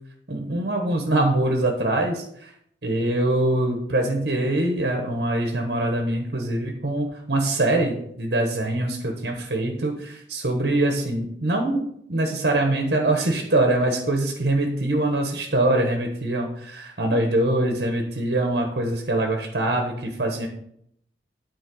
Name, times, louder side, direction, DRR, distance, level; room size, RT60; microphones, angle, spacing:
voice 1, 0.3-2.5 2.8-11.8 12.1-20.5, right 1 dB, 65° right, 2 dB, 1.2 m, -23 dB
9.4 x 4.5 x 6.2 m, 0.71 s
head